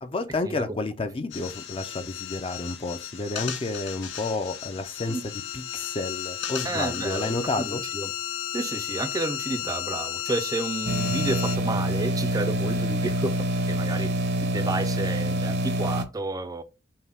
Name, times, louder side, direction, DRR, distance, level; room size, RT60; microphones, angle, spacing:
voice 1, 0.0-7.8, left 2 dB, 30° left, 0.5 m, -30 dB
sound 1, 1.3-11.6, left 11 dB, 75° left, 0.8 m, -34 dB
voice 2, 6.6-8.1 8.5-16.6, right 2 dB, 20° right, 0.4 m, -31 dB
sound 2, 10.9-16.0, right 1 dB, 65° right, 0.8 m, -26 dB
5.5 x 2.2 x 3.4 m
head